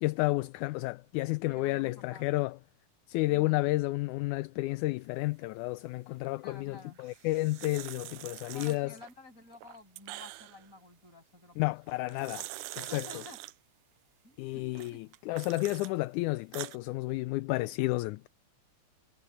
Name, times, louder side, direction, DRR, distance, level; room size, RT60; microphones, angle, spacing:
voice 1, 0.0-2.6 3.1-8.9 11.6-12.4 12.8-13.0 14.4-18.3, left 20 dB, 80° left, 2.0 m, -31 dB
voice 2, 1.5-2.5 3.3-3.6 6.4-7.0 8.5-12.1 12.9-13.4 14.2-14.6 14.9-15.0, left 2 dB, 25° left, 8.0 m, -52 dB
sound 1, 7.0-9.1 9.5-10.7 11.9-13.5 14.8-15.9 16.3-16.8, right 17 dB, 85° right, 2.0 m, -44 dB
omnidirectional pair, 3.5 m